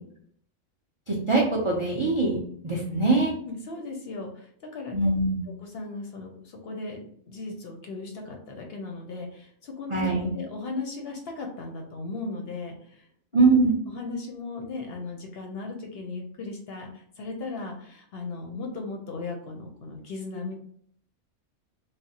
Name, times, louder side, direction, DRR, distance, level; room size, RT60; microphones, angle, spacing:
voice 1, 1.1-2.4 2.6-3.3 4.9-5.4 9.9-10.3 13.3-13.7, right 3 dB, 55° right, -4 dB, 0.3 m, -22 dB
voice 2, 3.4-4.9 5.6-13.0 13.3-13.6 13.9-20.6, left 3 dB, 65° left, 2 dB, 0.7 m, -37 dB
3.3 x 2.0 x 2.7 m, 0.63 s
omnidirectional pair, 1.3 m